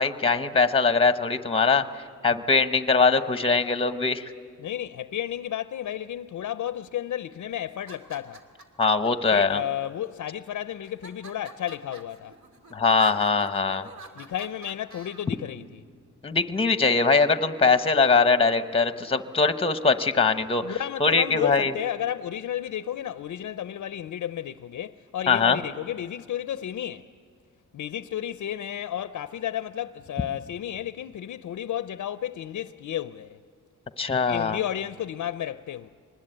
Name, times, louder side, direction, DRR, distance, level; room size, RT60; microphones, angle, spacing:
voice 1, 0.0-1.9 2.2-4.3 8.8-9.6 12.7-13.9 16.2-21.7 25.3-25.6 34.0-34.6, left 4 dB, 20° left, 0.9 m, -22 dB
voice 2, 4.6-8.4 9.3-12.4 14.2-15.8 20.6-27.1 27.7-33.4 34.3-35.9, left 11 dB, 70° left, 0.5 m, -32 dB
sound 1, 7.7-9.1 9.8-10.4 10.8-15.2, right 3 dB, 65° right, 2.4 m, -47 dB
25.0 x 20.5 x 8.9 m
wide cardioid pair, 115°, 31 cm